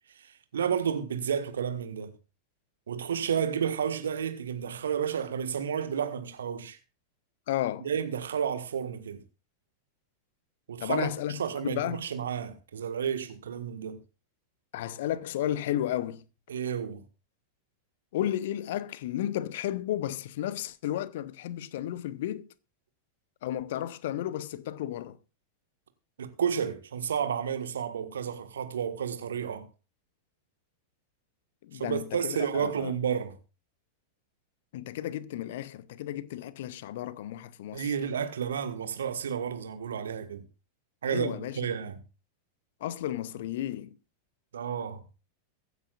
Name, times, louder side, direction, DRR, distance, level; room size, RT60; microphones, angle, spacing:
voice 1, 0.1-2.1 2.9-6.8 7.8-9.2 10.7-14.0 16.5-17.0 26.2-29.7 31.7-33.4 37.7-40.4 41.0-42.0 44.5-45.0, right 7 dB, 65° right, 1.6 m, -31 dB
voice 2, 7.5-7.9 10.8-12.0 14.7-16.2 18.1-22.5 23.4-25.2 31.6-32.9 34.7-37.9 41.1-41.6 42.8-43.9, left 12 dB, 55° left, 0.8 m, -33 dB
23.0 x 9.4 x 2.5 m
figure-of-eight pair, 90°, 0 cm